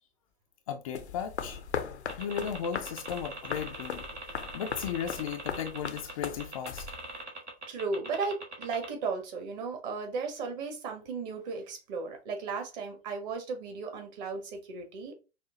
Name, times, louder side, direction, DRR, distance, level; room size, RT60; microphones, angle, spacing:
voice 1, 0.7-1.6 2.2-6.9, left 8 dB, 35° left, 0.4 m, -36 dB
sound 1, 0.9-7.2, left 7 dB, 75° left, 0.6 m, -39 dB
Geiger Counter Clicks, 2.1-8.9, right 2 dB, 90° right, 1.2 m, -41 dB
voice 2, 7.7-15.1, right 4 dB, 40° right, 1.3 m, -35 dB
5.6 x 2.2 x 2.8 m
figure-of-eight pair, 100°, 34 cm